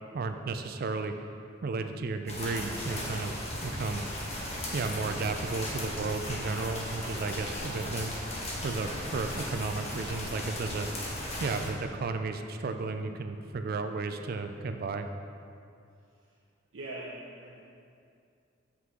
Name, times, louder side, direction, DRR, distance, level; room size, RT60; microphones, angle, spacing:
voice 1, 0.1-1.1 1.6-3.3 3.6-4.0 4.7-8.2 8.6-10.9 11.4-15.1, right 3 dB, 50° right, 7 dB, 0.4 m, -33 dB
sound 1, 2.3-11.7, left 1 dB, 30° left, 1.2 m, -36 dB
voice 2, 16.7-17.6, right 1 dB, 70° right, -5 dB, 0.7 m, -42 dB
7.6 x 5.9 x 3.7 m, 2.4 s
head